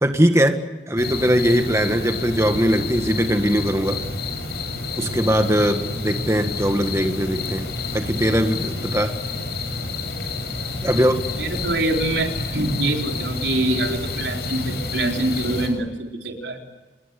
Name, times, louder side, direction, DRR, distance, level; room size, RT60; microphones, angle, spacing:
voice 1, 0.0-0.6 0.9-4.0 5.0-7.7 7.9-9.1 10.8-11.2, equal, 15° right, 6 dB, 1.7 m, -20 dB
sound 1, 1.0-15.7, left 3 dB, 65° left, 6.4 m, -29 dB
voice 2, 11.4-16.6, right 1 dB, 90° right, 2 dB, 4.3 m, -25 dB
27.0 x 22.0 x 8.4 m, 1.2 s
head